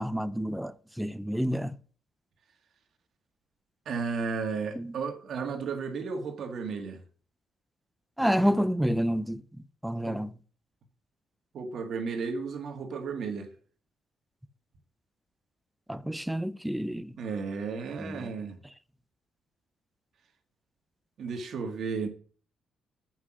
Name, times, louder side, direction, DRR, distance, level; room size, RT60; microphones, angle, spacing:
voice 1, 0.0-1.8 4.8-4.9 8.2-9.4 9.8-10.3 15.9-17.1 18.0-18.3, equal, 5° right, 0.5 m, -29 dB
voice 2, 3.9-7.0 10.1-10.2 11.5-13.5 17.2-18.6 21.2-22.1, right 5 dB, 65° right, 1.8 m, -33 dB
8.1 x 6.1 x 6.1 m
cardioid pair, 90°, 0 cm